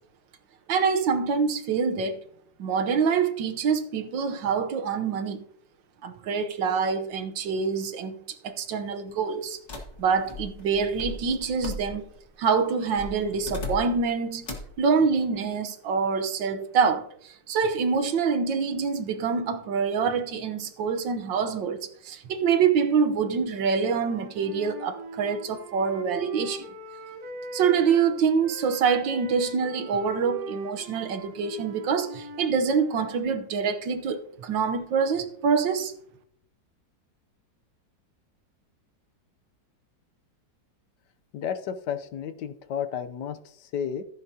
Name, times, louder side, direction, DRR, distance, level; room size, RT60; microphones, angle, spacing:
voice 1, 0.7-2.2 2.6-5.4 6.0-8.2 8.4-9.6 10.0-12.0 12.4-14.4 14.8-26.7 27.5-35.9, right 6 dB, 85° right, 1.7 m, -25 dB
sound 1, 9.7-12.3 13.0-14.1 14.4-14.8, left 3 dB, 40° left, 1.9 m, -38 dB
Wind instrument woodwind instrument, 23.7-28.1 28.4-33.2, right 1 dB, 55° right, 1.7 m, -41 dB
voice 2, 41.3-44.0, left 8 dB, 70° left, 1.3 m, -32 dB
15.0 x 8.5 x 2.8 m
omnidirectional pair, 2.0 m